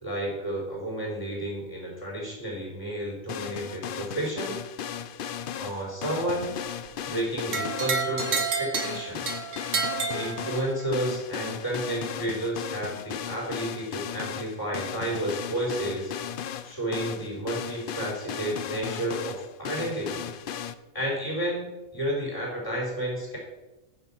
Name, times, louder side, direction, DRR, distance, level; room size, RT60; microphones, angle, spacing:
voice 1, 0.0-4.6 5.6-6.5 7.1-9.4 10.0-16.1 16.6-20.3 20.9-23.4, right 1 dB, 15° left, -3 dB, 4.4 m, -31 dB
sound 1, 3.3-20.7, left 9 dB, 60° left, 0.5 m, -36 dB
sound 2, 7.5-10.9, right 5 dB, 60° right, 1.6 m, -30 dB
9.5 x 7.0 x 5.8 m, 1.0 s
omnidirectional pair, 1.5 m